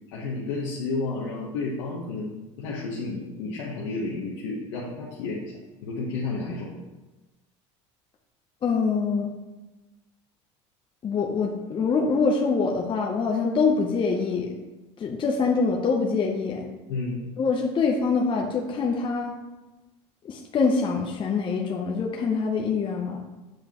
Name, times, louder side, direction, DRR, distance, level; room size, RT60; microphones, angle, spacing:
voice 1, 0.1-2.3 2.6-5.4 5.8-6.8 16.9-17.2, left 3 dB, 80° left, -3 dB, 1.0 m, -31 dB
voice 2, 8.6-9.3 11.0-14.5 15.0-16.7 17.4-19.4 20.2-23.2, left 4 dB, 35° left, 1 dB, 0.8 m, -25 dB
7.6 x 4.9 x 3.0 m, 1.1 s
supercardioid pair, 90°, 15 cm